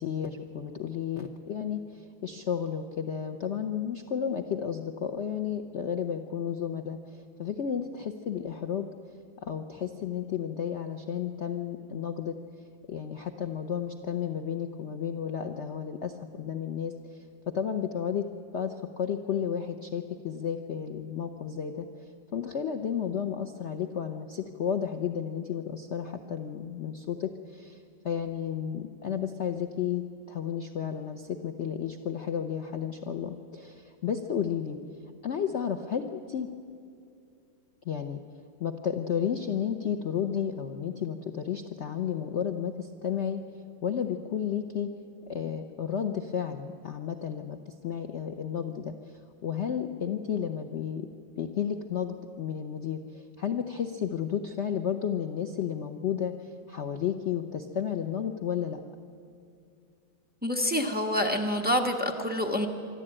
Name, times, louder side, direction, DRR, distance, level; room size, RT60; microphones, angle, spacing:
voice 1, 0.0-8.9 9.4-12.3 12.9-16.9 17.5-18.3 18.5-21.9 22.3-34.8 35.2-36.5 37.9-38.2 38.6-44.9 45.3-51.1 51.4-58.8, left 8 dB, 70° left, 6 dB, 0.6 m, -32 dB
voice 2, 60.4-62.7, equal, 5° right, 3 dB, 0.9 m, -27 dB
25.0 x 12.5 x 8.8 m, 2.4 s
omnidirectional pair, 2.2 m